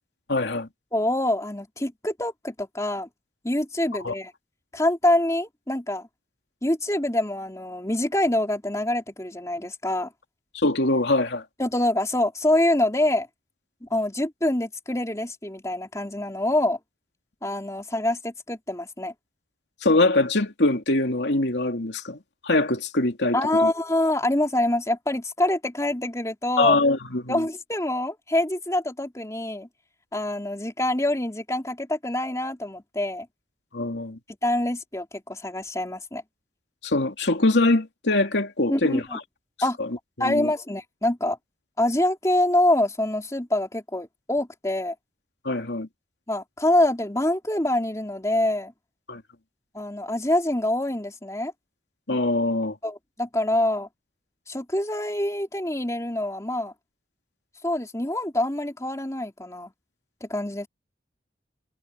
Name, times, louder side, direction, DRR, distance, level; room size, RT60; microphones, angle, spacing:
voice 1, 0.3-0.7 4.0-4.1 10.5-11.4 19.8-22.2 22.4-23.7 26.6-27.4 33.7-34.2 36.8-39.2 39.8-39.9 40.2-40.5 45.4-45.9 49.1-49.2 52.1-52.8, left 2 dB, 80° left, 2.6 m, -23 dB
voice 2, 0.9-3.1 3.4-4.3 4.7-6.1 6.6-10.1 11.6-13.3 13.8-16.8 17.4-19.1 23.3-26.8 27.3-29.7 30.1-33.3 34.4-36.2 38.7-39.2 39.6-39.8 40.2-41.4 41.8-44.9 46.3-48.7 49.7-51.5 52.8-53.9 54.5-56.7 57.6-59.7 60.2-60.7, left 1 dB, 20° left, 3.5 m, -25 dB
head